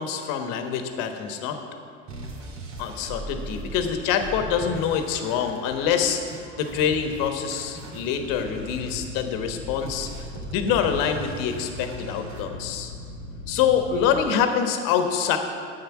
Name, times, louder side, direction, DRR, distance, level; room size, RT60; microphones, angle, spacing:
voice 1, 0.0-1.6 2.8-12.9 13.5-15.4, left 8 dB, 55° left, 6 dB, 1.4 m, -25 dB
sound 1, 2.1-12.4, right 1 dB, 45° right, 2.5 m, -39 dB
sound 2, 8.2-14.2, left 1 dB, 85° left, 1.1 m, -39 dB
10.5 x 8.5 x 6.0 m, 2.3 s
hypercardioid pair, 75°, 39 cm